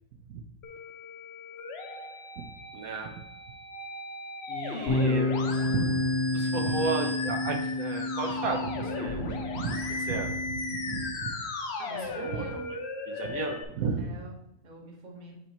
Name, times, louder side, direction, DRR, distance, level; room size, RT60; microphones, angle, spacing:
Musical instrument, 0.6-13.6, left 3 dB, 50° left, 1.0 m, -37 dB
voice 1, 1.5-2.0 11.8-12.7 14.0-15.3, right 3 dB, 35° right, 1 dB, 1.2 m, -45 dB
voice 2, 2.7-3.2 4.5-5.9 6.3-10.6 10.9-11.4 12.2-12.4 13.1-14.1, right 4 dB, 75° right, 3 dB, 1.2 m, -33 dB
sound 1, 4.9-11.1, left 2 dB, 80° left, 1.6 m, -30 dB
8.0 x 4.5 x 2.9 m, 0.89 s
omnidirectional pair, 1.5 m